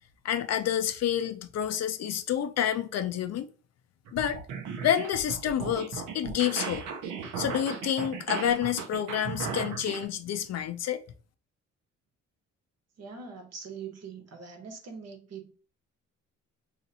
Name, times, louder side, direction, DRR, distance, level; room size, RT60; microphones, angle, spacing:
voice 1, 0.2-3.5 4.1-4.4 4.8-6.8 7.4-11.0, left 10 dB, 60° left, 0.5 m, -29 dB
sound 1, 4.1-10.1, right 6 dB, 80° right, 0.8 m, -36 dB
voice 2, 13.0-15.5, right 5 dB, 55° right, 1.1 m, -42 dB
2.8 x 2.8 x 3.9 m
cardioid pair, 90°, 30 cm